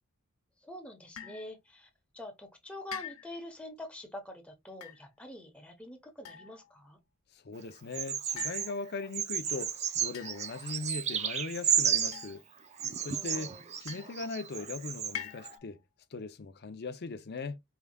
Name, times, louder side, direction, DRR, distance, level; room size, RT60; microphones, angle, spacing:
voice 1, 0.6-1.9 2.1-7.0 13.1-13.7, left 1 dB, 5° left, 1.0 m, -45 dB
sound 1, 1.2-1.5 2.9-3.5 4.7-5.0 6.2-6.8 8.4-9.1 10.1-10.7 12.1-12.7 13.9-14.4 15.1-15.8, left 9 dB, 85° left, 1.0 m, -45 dB
voice 2, 7.3-12.4 13.0-15.8 16.1-17.6, left 3 dB, 45° left, 0.6 m, -39 dB
Bird vocalization bird call bird song, 7.9-8.7 9.1-12.3 12.8-15.1 15.4-15.5, right 8 dB, 30° right, 0.5 m, -32 dB
4.7 x 3.5 x 2.3 m
head